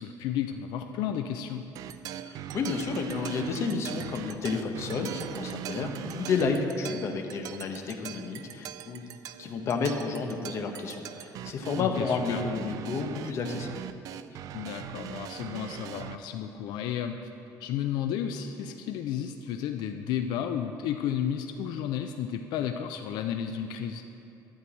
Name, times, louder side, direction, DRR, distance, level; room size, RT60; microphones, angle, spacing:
voice 1, 0.0-1.6 11.8-12.4 14.5-17.3 17.6-24.0, left 9 dB, 80° left, 7 dB, 0.4 m, -32 dB
sound 1, 1.8-16.2, right 11 dB, 55° right, 0.3 m, -41 dB
voice 2, 2.2-9.1 9.4-13.7, left 4 dB, 40° left, 4 dB, 0.9 m, -31 dB
11.5 x 4.6 x 8.3 m, 2.8 s
cardioid pair, 175°, 7 cm